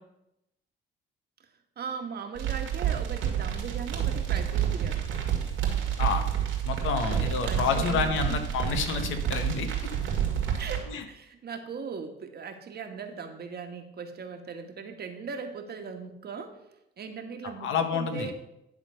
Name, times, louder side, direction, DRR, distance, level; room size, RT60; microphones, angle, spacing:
voice 1, 1.8-5.1 7.0-8.4 10.6-16.6 17.0-18.3, right 5 dB, 55° right, 5 dB, 1.3 m, -39 dB
sound 1, 2.3-10.8, right 9 dB, 85° right, 2.1 m, -29 dB
voice 2, 6.6-9.7 10.9-11.0 17.6-18.3, left 6 dB, 80° left, 6 dB, 1.2 m, -28 dB
11.0 x 3.7 x 6.7 m, 0.86 s
cardioid pair, 90°, 20 cm